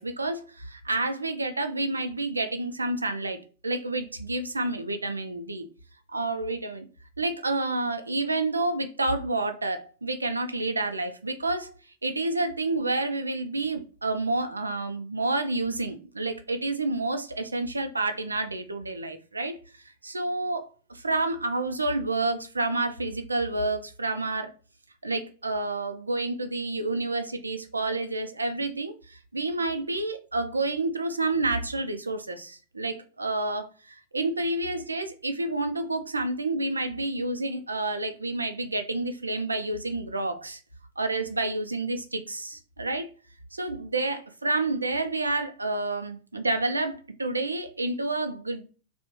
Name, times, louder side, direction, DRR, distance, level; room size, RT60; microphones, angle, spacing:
voice 1, 0.0-5.7 6.1-6.9 7.2-11.7 12.0-19.6 20.0-24.5 25.0-40.6 41.0-43.1 43.5-48.6, right 2 dB, 80° right, 0.5 m, -29 dB
3.4 x 2.5 x 2.9 m
figure-of-eight pair, 90°, 0 cm